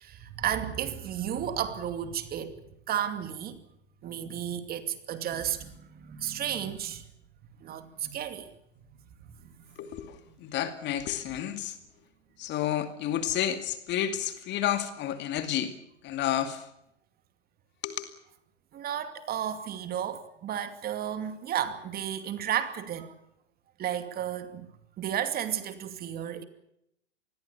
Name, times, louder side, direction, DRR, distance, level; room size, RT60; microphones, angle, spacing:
voice 1, 0.0-2.6 2.9-3.6 4.0-7.0 7.6-8.5 18.7-23.1 23.8-24.7 25.0-26.4, right 10 dB, 25° right, 2.5 m, -33 dB
voice 2, 9.8-11.8 12.4-15.7 16.0-16.7 17.8-18.1, left 11 dB, 30° left, 2.4 m, -31 dB
27.0 x 21.0 x 7.0 m
hypercardioid pair, 115°, 36 cm